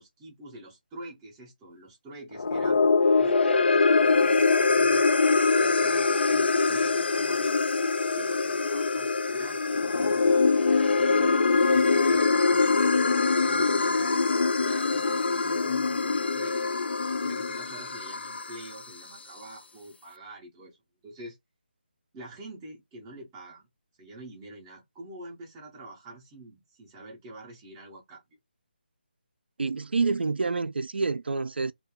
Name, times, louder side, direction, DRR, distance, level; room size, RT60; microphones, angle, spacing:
voice 1, 0.0-2.8 3.2-5.1 5.6-7.6 8.1-10.4 11.0-14.1 14.6-16.6 17.0-20.8 21.0-21.4 22.1-23.7 24.0-28.2, right 1 dB, 5° right, 0.4 m, -45 dB
sound 1, 2.3-18.8, left 4 dB, 80° left, 0.4 m, -23 dB
voice 2, 29.6-31.7, right 4 dB, 80° right, 0.4 m, -27 dB
2.3 x 2.2 x 3.4 m
hypercardioid pair, 180°, 6 cm